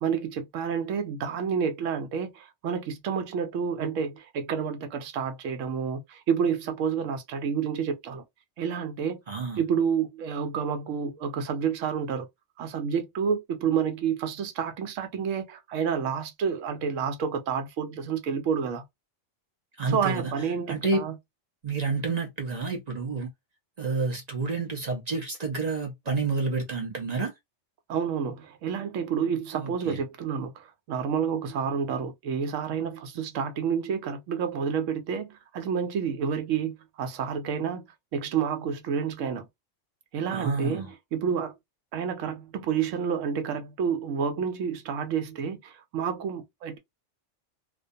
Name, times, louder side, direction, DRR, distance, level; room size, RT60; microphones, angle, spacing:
voice 1, 0.0-8.2 8.6-9.2 9.6-12.3 12.6-18.8 19.9-21.1 27.9-37.8 38.1-39.5 40.1-40.8 41.1-41.5 41.9-46.8, right 7 dB, 75° right, 1.0 m, -29 dB
voice 2, 9.3-9.6 19.8-21.0 21.6-23.3 23.8-27.3 29.5-30.0 40.3-40.9, right 4 dB, 55° right, 0.4 m, -29 dB
2.5 x 2.2 x 2.5 m
omnidirectional pair, 1.3 m